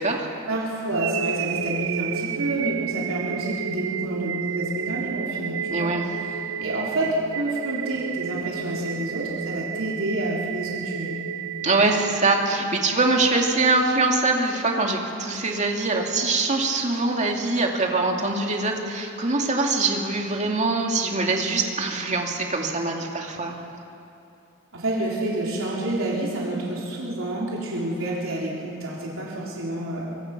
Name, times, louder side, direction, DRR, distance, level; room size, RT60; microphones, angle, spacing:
voice 1, 0.5-5.9 6.6-11.2 24.7-30.1, right 1 dB, 80° right, -4 dB, 3.9 m, -28 dB
sound 1, 0.9-13.0, right 7 dB, 65° right, 0.6 m, -31 dB
voice 2, 5.7-6.1 11.6-23.6, right 3 dB, 35° right, 1 dB, 2.4 m, -23 dB
24.5 x 23.0 x 6.1 m, 2.7 s
head